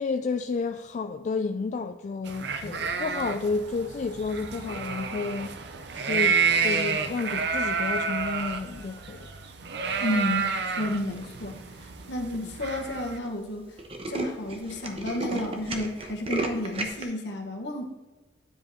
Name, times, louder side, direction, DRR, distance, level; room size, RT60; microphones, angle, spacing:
voice 1, 0.0-5.6 5.9-9.3, left 4 dB, 40° left, 0.3 m, -31 dB
sound 1, 2.3-13.2, right 5 dB, 65° right, 0.7 m, -30 dB
voice 2, 10.0-11.6 12.1-13.8 14.1-17.9, left 1 dB, 70° left, 1.4 m, -31 dB
Tools, 11.0-11.4 12.0-12.1 12.3-12.4 12.7-12.9 13.2-13.3 13.6-17.0, right 2 dB, 30° right, 1.0 m, -34 dB
9.7 x 5.2 x 4.2 m
head